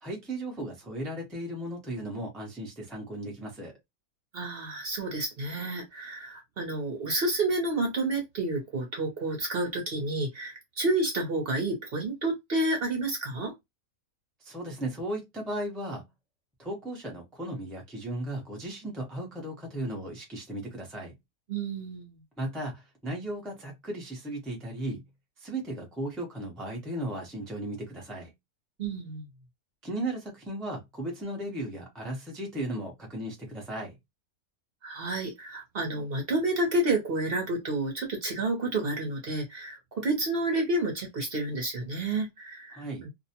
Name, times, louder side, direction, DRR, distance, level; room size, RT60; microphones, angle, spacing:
voice 1, 0.0-3.7 14.4-16.0 16.6-21.1 22.4-25.0 25.4-28.3 29.8-33.9 42.7-43.1, right 1 dB, ahead, 0.5 m, -36 dB
voice 2, 4.3-13.5 21.5-22.2 28.8-29.2 34.8-43.1, right 2 dB, 50° right, 0.8 m, -30 dB
2.6 x 2.0 x 2.8 m
omnidirectional pair, 1.5 m